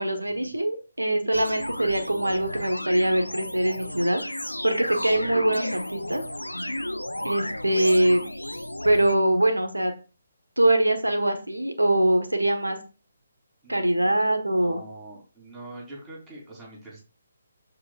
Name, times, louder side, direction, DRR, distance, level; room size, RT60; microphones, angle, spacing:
voice 1, 0.0-4.2 4.6-6.2 7.2-8.3 8.8-9.9 10.6-12.8 13.7-14.8, right 1 dB, 85° right, 6 dB, 1.3 m, -23 dB
sound 1, 1.3-9.2, left 1 dB, 90° left, 0.7 m, -33 dB
voice 2, 13.6-14.2 14.6-17.0, right 2 dB, 15° right, -3 dB, 3.4 m, -44 dB
13.0 x 4.8 x 2.5 m, 0.33 s
figure-of-eight pair, 140°, 0 cm